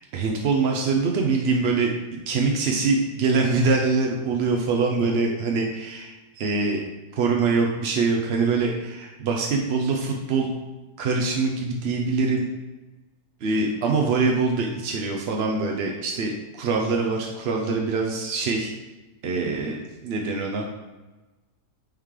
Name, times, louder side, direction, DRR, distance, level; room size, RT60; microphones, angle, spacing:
voice 1, 0.0-6.8 7.2-10.5 11.0-12.4 13.4-18.7 19.2-20.6, right 4 dB, 65° right, 0 dB, 0.6 m, -24 dB
9.0 x 3.2 x 3.6 m, 1.2 s
omnidirectional pair, 1.7 m